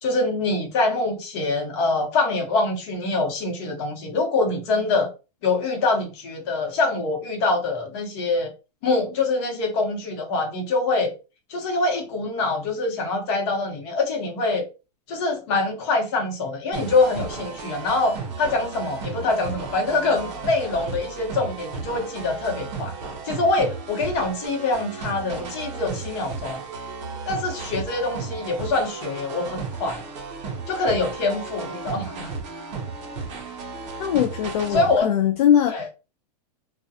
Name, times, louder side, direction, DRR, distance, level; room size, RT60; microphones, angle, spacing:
voice 1, 0.0-5.1 5.4-8.5 8.8-11.1 11.5-14.6 15.1-22.9 23.2-26.6 27.3-30.0 30.7-32.3 34.7-35.1 35.7-35.8, left 3 dB, 45° left, 0.9 m, -24 dB
sound 1, 16.7-35.0, right 4 dB, 45° right, 0.7 m, -34 dB
voice 2, 34.0-35.9, left 10 dB, 70° left, 0.4 m, -21 dB
2.4 x 2.2 x 2.6 m
supercardioid pair, 160°, 21 cm